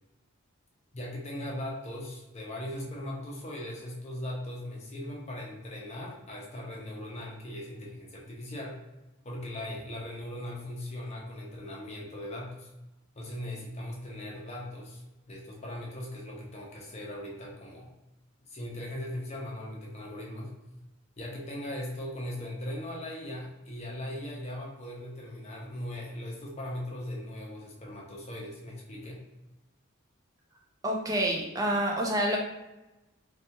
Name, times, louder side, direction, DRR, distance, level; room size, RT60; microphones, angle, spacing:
voice 1, 0.9-8.8 9.2-12.7 13.1-17.9 18.5-20.5 21.2-29.2, left 1 dB, 30° left, -3 dB, 0.6 m, -39 dB
voice 2, 30.8-32.4, right 1 dB, 15° right, -1 dB, 0.4 m, -27 dB
2.3 x 2.3 x 2.8 m, 0.99 s
head